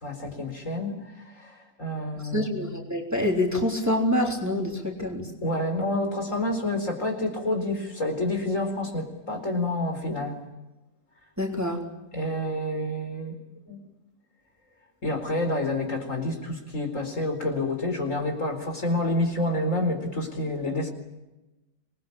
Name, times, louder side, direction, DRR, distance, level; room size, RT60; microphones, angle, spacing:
voice 1, 0.0-2.5 5.4-10.4 12.1-13.4 13.7-13.8 15.0-20.9, left 1 dB, 45° left, 4 dB, 4.7 m, -28 dB
voice 2, 2.3-5.3 11.4-11.8, left 1 dB, 10° right, 1 dB, 3.5 m, -26 dB
26.5 x 21.0 x 8.7 m, 1.0 s
omnidirectional pair, 1.8 m